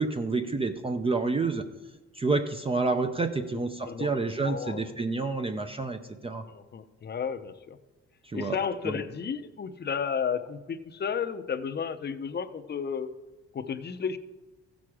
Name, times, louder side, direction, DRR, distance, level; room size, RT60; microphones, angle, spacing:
voice 1, 0.0-1.6 2.1-6.4 8.3-8.6 8.8-8.9, right 3 dB, 20° right, 6 dB, 0.6 m, -29 dB
voice 2, 3.8-4.9 6.4-7.8 8.3-13.1 13.5-14.2, left 6 dB, 35° left, 9 dB, 0.7 m, -33 dB
14.5 x 6.2 x 4.9 m, 1.1 s
cardioid pair, 90°, 30 cm